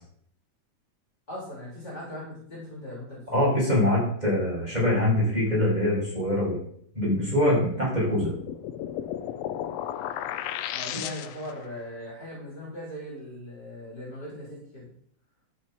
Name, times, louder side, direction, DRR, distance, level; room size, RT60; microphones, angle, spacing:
voice 1, 1.3-3.4 7.7-7.8 10.7-14.9, left 1 dB, 30° left, -4 dB, 3.9 m, -39 dB
voice 2, 3.3-6.6 6.9-8.3, left 1 dB, 15° right, -6 dB, 5.6 m, -24 dB
sound 1, 8.1-11.6, left 11 dB, 80° left, 1.6 m, -34 dB
12.5 x 6.5 x 5.6 m, 0.64 s
omnidirectional pair, 3.5 m